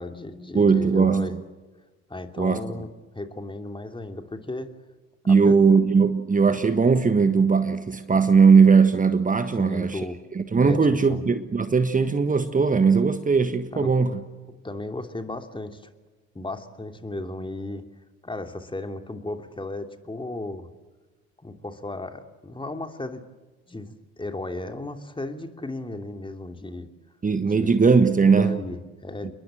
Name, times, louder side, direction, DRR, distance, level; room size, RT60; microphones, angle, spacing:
voice 1, 0.0-1.3 2.1-4.7 5.2-5.6 9.6-10.2 10.6-11.2 13.7-14.0 14.5-15.9 16.3-17.8 18.2-20.7 21.4-23.2 23.7-26.9 27.4-27.7 28.4-29.3, left 2 dB, 15° left, 3.0 m, -35 dB
voice 2, 0.5-1.3 2.4-2.6 5.3-10.1 10.3-14.2 27.2-28.6, right 5 dB, 25° right, 1.5 m, -19 dB
29.0 x 22.0 x 7.8 m
figure-of-eight pair, 55°, 34 cm